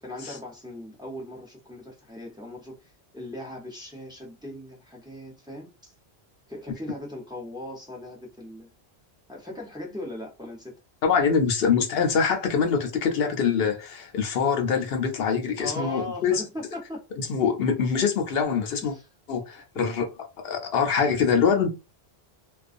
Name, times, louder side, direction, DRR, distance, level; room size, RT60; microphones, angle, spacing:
voice 1, 0.0-5.9 6.5-8.7 9.3-10.7 15.6-17.0 18.8-19.1, left 1 dB, 5° right, 0.7 m, -39 dB
voice 2, 11.0-16.4 17.2-18.9 19.3-20.1 20.4-21.7, left 6 dB, 70° left, 0.9 m, -24 dB
2.4 x 2.4 x 2.5 m
omnidirectional pair, 1.1 m